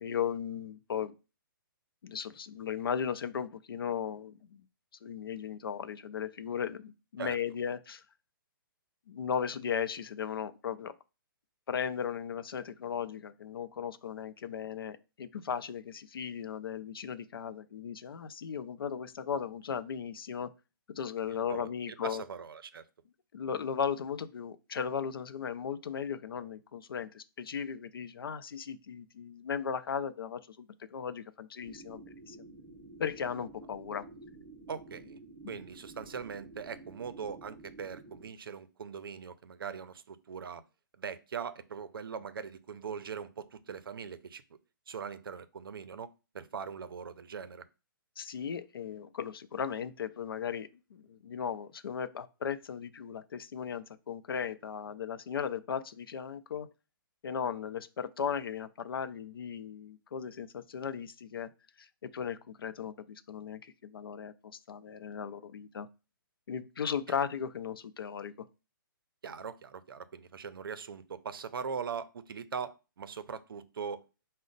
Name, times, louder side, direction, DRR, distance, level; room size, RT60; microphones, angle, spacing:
voice 1, 0.0-1.1 2.0-4.7 5.0-8.0 9.1-10.9 11.7-20.5 20.9-22.2 23.3-32.4 33.0-34.1 35.4-35.6 48.2-56.7 57.2-61.5 61.8-65.9 66.5-68.5, left 7 dB, 80° left, 0.5 m, -36 dB
voice 2, 21.5-22.8 34.7-35.2 35.5-40.6 41.0-44.4 44.9-47.6 69.2-74.0, right 6 dB, 75° right, 0.5 m, -41 dB
sound 1, 31.6-38.3, right 2 dB, 10° left, 2.2 m, -51 dB
5.0 x 2.1 x 3.9 m
hypercardioid pair, 180°, 12 cm